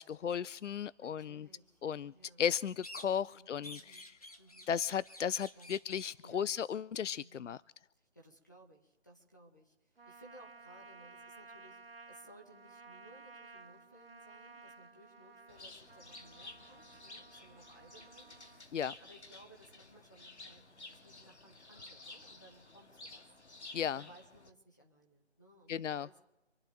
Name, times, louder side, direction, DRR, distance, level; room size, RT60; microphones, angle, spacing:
voice 1, 0.0-1.5 1.8-2.1 2.4-4.1 4.7-7.6 18.7-18.9 23.7-24.0 25.7-26.1, left 8 dB, 85° left, 20 dB, 0.5 m, -35 dB
voice 2, 1.0-2.4 3.2-4.1 4.4-4.7 5.5-5.7 6.2-6.6 7.1-7.6 7.9-23.2 23.9-26.2, right 1 dB, 15° left, -1 dB, 1.2 m, -60 dB
sound 1, 2.8-3.3 3.6-6.2, left 1 dB, 30° left, 1.1 m, -51 dB
Trumpet, 10.0-18.7, right 4 dB, 55° right, 0.7 m, -56 dB
Bird, 15.5-24.5, left 2 dB, 65° left, 2.0 m, -53 dB
27.0 x 11.0 x 4.0 m, 0.94 s
figure-of-eight pair, 175°, 36 cm